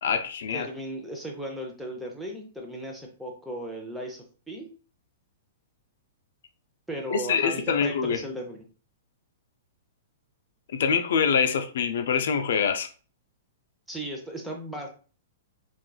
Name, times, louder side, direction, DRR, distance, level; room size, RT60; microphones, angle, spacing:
voice 1, 0.0-0.7 7.1-8.2 10.7-12.9, left 6 dB, 70° left, 0.3 m, -25 dB
voice 2, 0.5-4.7 6.9-8.6 13.9-14.9, right 1 dB, 5° right, 0.6 m, -36 dB
3.0 x 2.3 x 2.2 m
hypercardioid pair, 140°, 0 cm